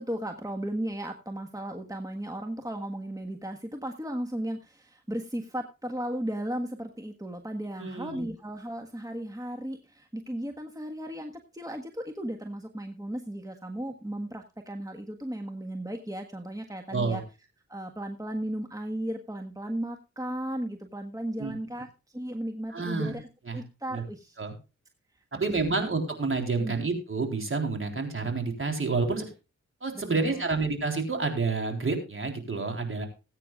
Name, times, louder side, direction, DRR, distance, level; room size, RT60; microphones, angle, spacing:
voice 1, 0.0-17.2 17.7-21.9 22.1-23.3 23.5-24.4 25.3-25.8 26.6-26.7 29.9-30.5, right 1 dB, 10° right, 4 dB, 1.6 m, -35 dB
voice 2, 7.8-8.3 16.9-17.2 21.4-21.5 22.7-23.1 23.5-23.6 23.9-24.0 24.4-24.5 25.3-29.3 29.8-33.1, right 3 dB, 45° right, 4 dB, 3.9 m, -29 dB
19.5 x 9.1 x 2.4 m, 0.29 s
cardioid pair, 60°, 29 cm